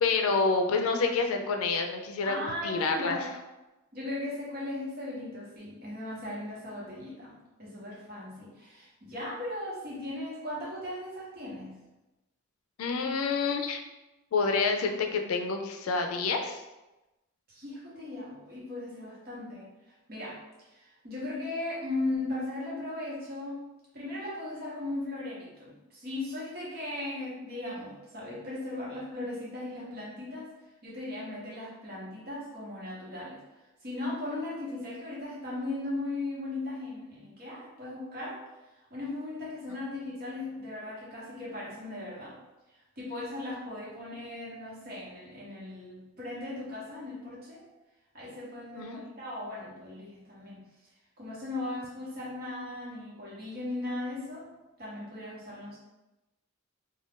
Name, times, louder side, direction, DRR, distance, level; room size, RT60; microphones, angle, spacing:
voice 1, 0.0-2.4 2.6-3.2 12.8-13.8 14.3-16.6 48.8-49.0, left 4 dB, 85° left, 5 dB, 0.4 m, -28 dB
voice 2, 2.2-3.3 3.9-11.8 17.5-20.4 20.7-23.6 23.9-30.5 30.8-33.4 33.8-42.4 43.0-47.6 48.1-50.7 51.2-54.5 54.8-55.8, left 2 dB, 50° right, -6 dB, 1.0 m, -37 dB
2.5 x 2.2 x 3.5 m, 1.0 s
head